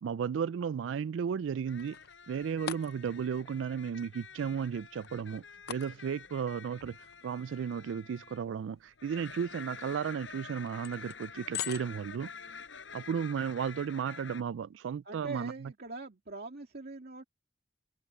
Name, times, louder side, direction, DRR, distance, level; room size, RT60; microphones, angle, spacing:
voice 1, 0.0-2.0 2.3-5.4 5.7-7.0 7.2-8.8 9.0-12.3 12.9-15.5, right 7 dB, 75° right, 0.3 m, -34 dB
sound 1, 1.4-13.1, left 10 dB, 60° left, 0.6 m, -48 dB
sound 2, 1.7-8.6 9.0-14.4, left 6 dB, 85° left, 5.7 m, -49 dB
voice 2, 15.0-17.2, right 3 dB, 55° right, 2.3 m, -42 dB
head